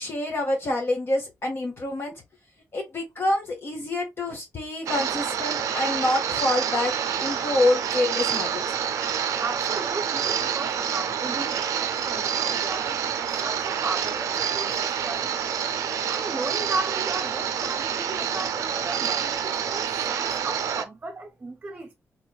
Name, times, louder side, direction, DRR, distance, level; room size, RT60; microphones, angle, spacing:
voice 1, 0.0-2.1 2.7-8.6, left 2 dB, 45° left, 0.9 m, -27 dB
sound 1, 4.9-20.8, right 8 dB, 85° right, 0.4 m, -27 dB
voice 2, 9.4-15.3 16.1-21.9, right 3 dB, 30° right, 0.5 m, -35 dB
3.2 x 2.9 x 2.2 m
cardioid pair, 80°, 5 cm